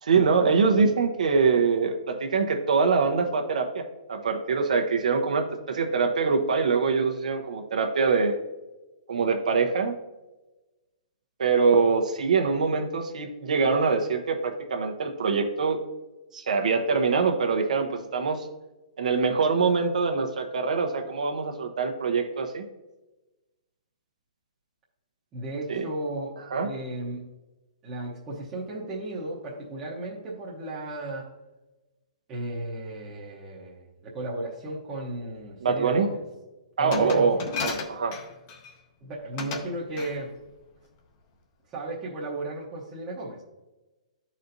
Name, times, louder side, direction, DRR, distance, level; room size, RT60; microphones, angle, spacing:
voice 1, 0.0-8.4 9.1-10.0 11.4-15.8 16.3-18.5 19.0-22.6 25.7-25.9 26.5-26.7 35.6-36.1 36.8-38.2, right 5 dB, 85° right, 4 dB, 0.9 m, -24 dB
voice 2, 25.3-26.3 26.6-27.2 27.8-31.3 32.3-36.2 36.8-37.5 39.0-40.3 41.7-43.4, right 2 dB, 15° right, -6 dB, 0.8 m, -35 dB
Glass, 36.9-38.7 39.4-39.7 40.0-40.2, left 5 dB, 25° left, 0.6 m, -33 dB
12.0 x 4.2 x 2.6 m, 1.1 s
hypercardioid pair, 175°, 4 cm